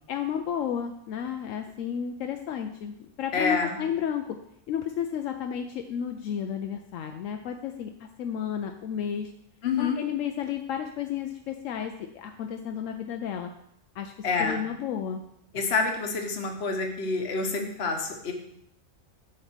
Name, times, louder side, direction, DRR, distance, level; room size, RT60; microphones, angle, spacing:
voice 1, 0.1-4.4 4.7-9.3 9.8-13.5 13.9-14.1 14.4-15.2, left 8 dB, 80° left, 5 dB, 0.9 m, -32 dB
voice 2, 3.3-3.8 9.6-10.0 14.2-14.6 15.5-18.3, left 4 dB, 55° left, 4 dB, 1.2 m, -27 dB
7.2 x 3.8 x 6.1 m, 0.75 s
omnidirectional pair, 1.3 m